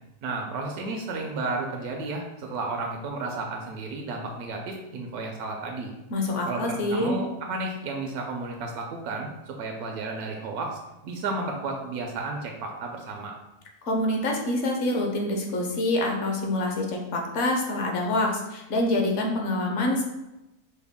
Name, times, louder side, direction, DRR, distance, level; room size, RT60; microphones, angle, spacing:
voice 1, 0.2-5.9 6.5-13.3, right 3 dB, 80° right, 2 dB, 1.1 m, -33 dB
voice 2, 6.1-7.2 13.8-20.0, left 1 dB, 60° left, 1 dB, 0.9 m, -26 dB
5.3 x 2.2 x 3.5 m, 0.96 s
omnidirectional pair, 1.6 m